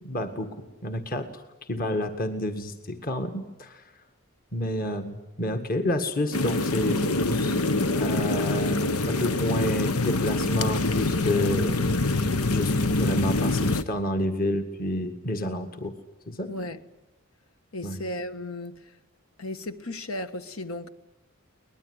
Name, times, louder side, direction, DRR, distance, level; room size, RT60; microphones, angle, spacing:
voice 1, 0.0-1.4 1.7-3.9 4.5-7.6 8.0-8.8 9.1-11.8 12.5-15.9 16.3-16.5 17.8-18.0, left 1 dB, 40° left, 1.8 m, -29 dB
sound 1, 6.3-13.8, left 2 dB, 90° left, 1.2 m, -25 dB
voice 2, 16.5-16.8 17.7-19.0 19.4-20.9, left 1 dB, 70° left, 1.6 m, -35 dB
23.5 x 20.5 x 9.6 m
head